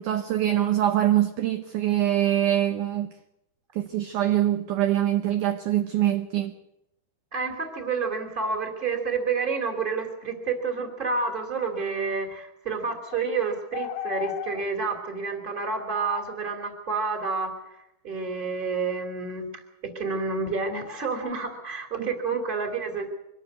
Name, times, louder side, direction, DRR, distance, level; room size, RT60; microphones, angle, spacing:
voice 1, 0.0-3.1 3.8-6.5 22.0-22.1, right 12 dB, 70° right, 2.1 m, -24 dB
voice 2, 7.3-17.5 18.0-23.1, right 4 dB, 15° right, 2.6 m, -29 dB
sound 1, 13.1-13.2 13.7-14.6 15.7-16.4 20.0-20.2 20.7-21.3, left 13 dB, 75° left, 2.6 m, -36 dB
24.0 x 12.5 x 9.4 m
omnidirectional pair, 4.4 m